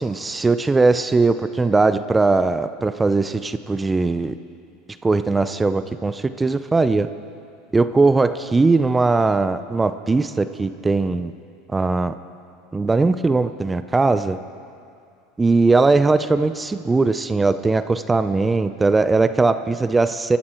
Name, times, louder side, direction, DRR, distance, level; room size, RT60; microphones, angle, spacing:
voice 1, 0.0-4.3 5.0-7.1 7.7-11.3 11.7-12.1 12.7-14.4 15.4-20.4, right 3 dB, 15° right, 12 dB, 0.6 m, -19 dB
24.0 x 13.0 x 4.5 m, 2.4 s
hypercardioid pair, 90°, 0 cm